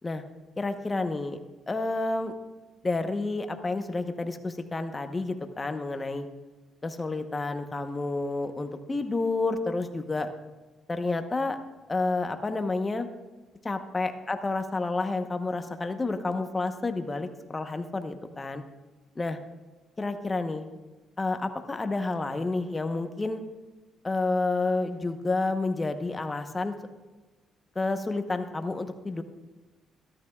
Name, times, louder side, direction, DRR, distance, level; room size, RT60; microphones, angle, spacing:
voice 1, 0.6-1.4 1.7-2.3 2.8-6.3 6.8-10.3 10.9-11.6 11.9-13.1 13.6-18.6 19.2-19.4 20.0-20.7 21.2-23.4 24.0-26.7 27.7-29.2, left 3 dB, 25° left, 7 dB, 1.0 m, -30 dB
14.0 x 12.5 x 2.4 m, 1.2 s
cardioid pair, 90°, 0 cm